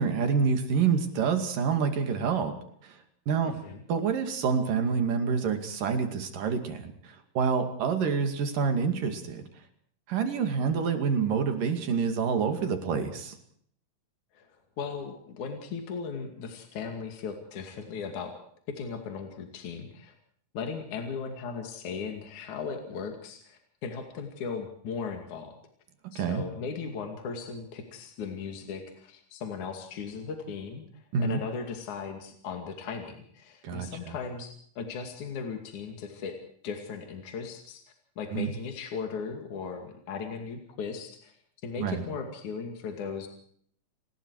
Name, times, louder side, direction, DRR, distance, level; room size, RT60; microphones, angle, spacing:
voice 1, 0.0-2.5 2.8-3.0 3.3-3.5 3.9-9.4 10.1-13.4 26.2-26.4 31.1-31.4 33.6-34.1 38.3-38.5 41.8-42.0, right 6 dB, 75° right, 7 dB, 4.0 m, -27 dB
voice 2, 3.4-3.8 14.3-14.5 14.8-18.3 18.7-20.1 20.5-25.5 26.1-36.4 36.6-37.8 38.2-41.4 41.6-43.3, left 5 dB, 60° left, 4 dB, 3.7 m, -37 dB
29.5 x 20.0 x 4.8 m, 0.63 s
omnidirectional pair, 3.9 m